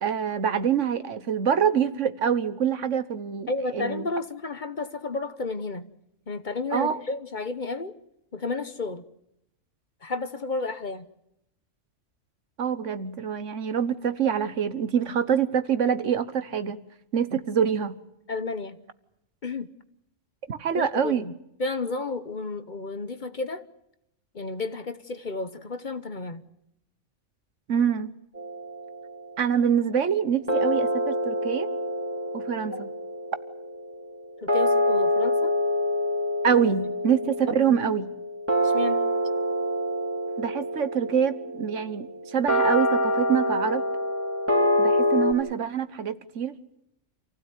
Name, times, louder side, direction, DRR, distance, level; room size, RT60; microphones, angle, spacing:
voice 1, 0.0-4.0 6.7-7.0 12.6-16.8 17.1-18.0 20.5-21.2 27.7-28.1 29.4-31.7 32.3-32.9 36.4-38.1 40.4-43.8 44.8-46.6, right 8 dB, 75° right, 12 dB, 1.5 m, -25 dB
voice 2, 3.5-5.9 6.3-7.9 8.3-9.0 10.0-11.1 18.3-18.8 19.4-19.7 20.8-21.3 21.6-23.6 24.3-26.4 32.7-32.9 34.4-35.5 38.6-39.0, left 3 dB, 40° left, 11 dB, 1.1 m, -32 dB
sound 1, 28.3-29.7 30.5-45.3, equal, 10° right, 3.3 m, -26 dB
27.5 x 16.0 x 9.2 m, 0.82 s
omnidirectional pair, 1.3 m